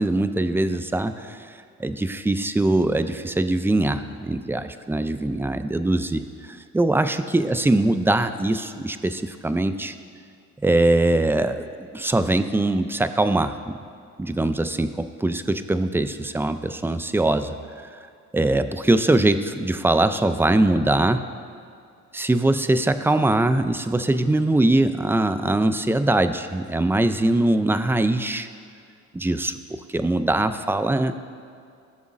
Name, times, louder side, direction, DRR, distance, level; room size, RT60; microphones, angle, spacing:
voice 1, 0.0-1.5 1.8-6.2 6.5-9.9 10.6-11.6 11.9-13.5 14.2-17.5 18.3-21.2 22.1-28.5 29.1-29.5 29.9-31.2, right 2 dB, 10° right, 10 dB, 0.4 m, -22 dB
16.5 x 7.1 x 2.6 m, 2.4 s
cardioid pair, 90°, 30 cm